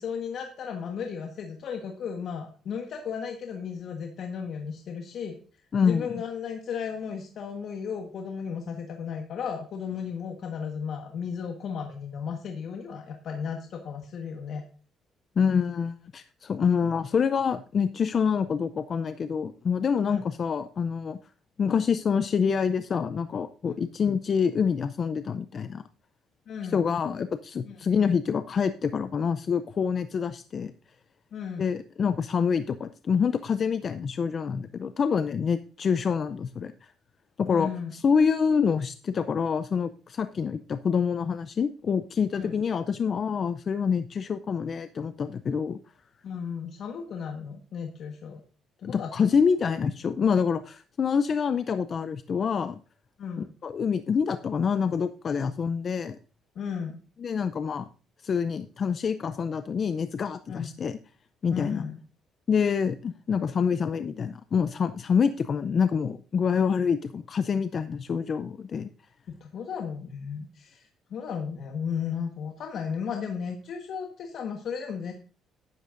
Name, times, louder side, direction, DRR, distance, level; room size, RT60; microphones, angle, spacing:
voice 1, 0.0-14.6 20.0-20.2 26.5-26.8 27.6-27.9 31.3-31.7 37.5-37.9 42.3-42.6 46.2-48.4 48.8-49.3 53.2-53.5 56.5-57.0 60.5-60.7 61.5-62.0 69.3-75.1, left 6 dB, 60° left, 3 dB, 1.4 m, -35 dB
voice 2, 5.7-6.1 15.4-21.2 21.6-25.8 26.6-30.7 31.6-36.7 37.4-45.8 48.8-52.8 53.6-56.2 57.2-57.9 58.2-61.0 61.4-61.9 62.5-68.9, left 6 dB, 45° left, 11 dB, 0.5 m, -26 dB
12.0 x 11.0 x 2.6 m, 0.39 s
cardioid pair, 110°, 0 cm